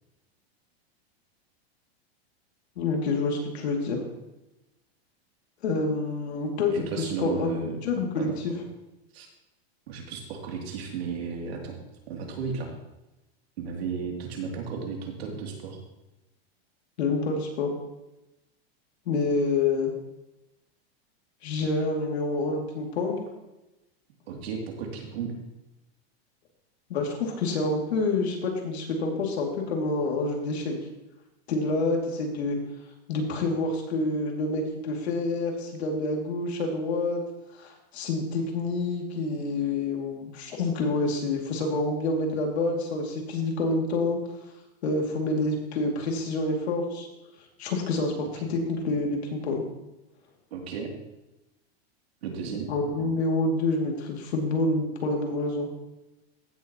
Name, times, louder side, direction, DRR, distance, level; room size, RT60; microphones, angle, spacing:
voice 1, 2.8-4.0 5.6-8.5 17.0-17.7 19.1-19.9 21.4-23.2 26.9-30.8 31.5-32.6 33.1-37.2 37.5-44.2 44.8-47.1 47.6-49.6 52.7-55.7, left 3 dB, 90° left, 1 dB, 2.7 m, -27 dB
voice 2, 6.7-7.8 8.2-8.3 9.1-9.3 9.9-11.8 12.1-12.7 13.6-15.8 24.3-25.4 50.5-50.9 52.2-52.7, right 5 dB, 75° right, 0 dB, 3.0 m, -34 dB
15.5 x 7.3 x 3.0 m, 0.97 s
supercardioid pair, 165°, 31 cm